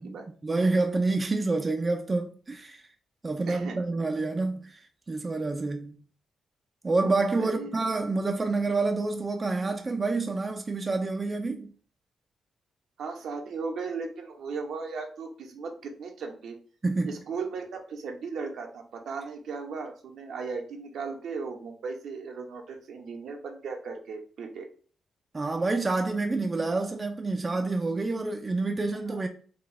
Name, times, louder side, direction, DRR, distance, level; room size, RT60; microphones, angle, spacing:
voice 1, 0.4-2.8 3.2-4.8 5.1-6.0 6.8-11.7 16.8-17.2 25.3-29.3, right 3 dB, 30° right, 0.6 m, -28 dB
voice 2, 3.5-4.0 7.4-7.7 13.0-16.6 17.0-24.7 29.1-29.2, right 4 dB, 75° right, 1.0 m, -37 dB
4.2 x 2.5 x 4.2 m
cardioid pair, 90°, 0 cm